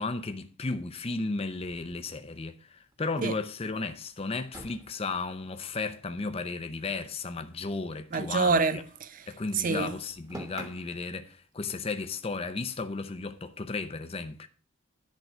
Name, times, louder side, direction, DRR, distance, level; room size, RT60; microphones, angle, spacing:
voice 1, 0.0-8.8 9.3-14.5, left 3 dB, 30° left, 0.6 m, -34 dB
sound 1, 1.6-2.9 3.3-3.4 3.7-3.8 4.5-7.0 7.2-9.1 9.3-11.1, right 1 dB, 20° right, 1.2 m, -49 dB
voice 2, 8.1-9.2 9.5-9.9, right 4 dB, 40° right, 0.5 m, -27 dB
11.0 x 3.8 x 6.0 m
head